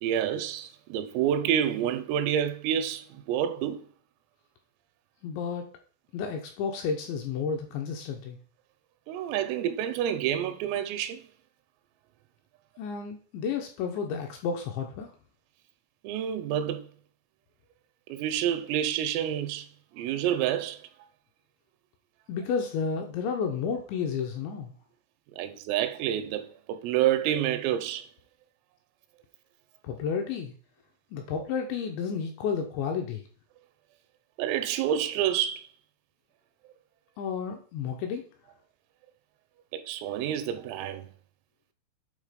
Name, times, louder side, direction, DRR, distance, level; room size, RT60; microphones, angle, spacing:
voice 1, 0.0-3.9 9.1-11.3 16.0-16.9 18.1-19.7 19.9-20.8 25.4-28.0 34.4-35.7 36.7-36.8 39.7-41.1, right 10 dB, 90° right, 3.3 m, -28 dB
voice 2, 5.2-5.7 6.1-8.4 12.8-15.1 22.3-24.8 29.8-30.5 31.1-33.2 37.2-38.3, left 6 dB, 80° left, 2.7 m, -31 dB
8.8 x 3.8 x 5.0 m
omnidirectional pair, 6.0 m